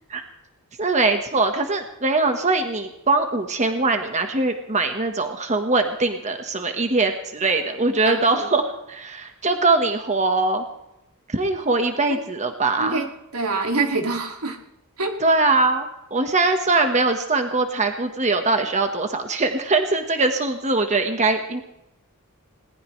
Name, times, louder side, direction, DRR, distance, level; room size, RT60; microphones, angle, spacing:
voice 1, 0.8-10.6 11.3-13.0 15.2-21.6, right 3 dB, 30° right, 6 dB, 1.4 m, -22 dB
voice 2, 8.0-8.5 12.1-12.2 12.8-13.1 13.3-14.6 15.0-15.2, right 3 dB, 85° right, 3 dB, 2.3 m, -25 dB
21.0 x 19.0 x 3.3 m, 0.85 s
head